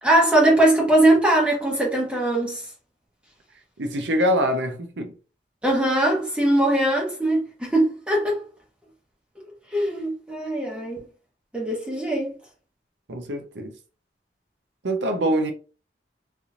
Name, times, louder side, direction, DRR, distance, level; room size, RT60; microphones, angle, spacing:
voice 1, 0.0-2.7 5.6-8.4 9.7-11.0 11.5-12.3, right 1 dB, 5° right, 0.9 m, -21 dB
voice 2, 3.8-5.1 13.1-13.7 14.8-15.5, equal, 85° right, 0.7 m, -24 dB
3.3 x 2.9 x 2.5 m
head